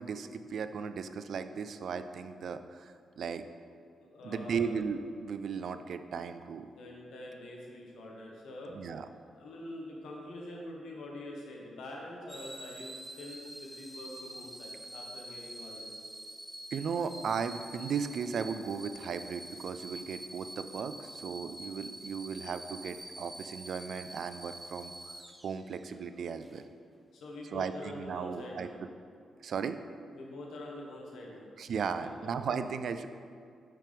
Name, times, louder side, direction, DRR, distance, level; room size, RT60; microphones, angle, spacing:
voice 1, 0.0-3.4 4.2-6.7 8.7-9.1 16.7-25.1 25.4-26.6 27.5-28.7 29.4-29.8 31.6-33.1, right 6 dB, 70° right, 10 dB, 0.3 m, -36 dB
voice 2, 4.0-4.8 6.7-8.8 9.3-16.0 27.1-28.8 30.1-31.5 31.9-32.3, left 1 dB, 80° left, -2 dB, 1.2 m, -45 dB
sound 1, 12.3-25.9 26.4-26.6, right 1 dB, 10° right, 0.6 m, -47 dB
5.9 x 5.8 x 3.5 m, 2.4 s
cardioid pair, 70°, 0 cm